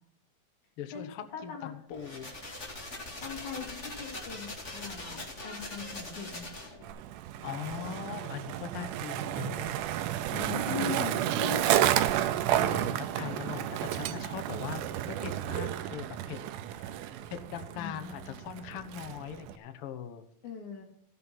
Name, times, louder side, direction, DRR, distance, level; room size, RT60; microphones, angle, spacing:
voice 1, 0.8-2.3 7.4-9.7 12.5-16.4 16.8-17.0 17.5-20.2, left 9 dB, 85° left, 8 dB, 1.2 m, -41 dB
voice 2, 1.3-1.7 3.2-6.5 10.3-11.8 17.8-18.4 20.4-20.8, left 7 dB, 60° left, 0 dB, 4.2 m, -40 dB
sound 1, 1.9-6.9, left 2 dB, 25° left, 2.3 m, -42 dB
Skateboard, 6.8-19.6, right 12 dB, 80° right, 2.0 m, -31 dB
15.0 x 7.6 x 6.0 m, 0.63 s
omnidirectional pair, 4.0 m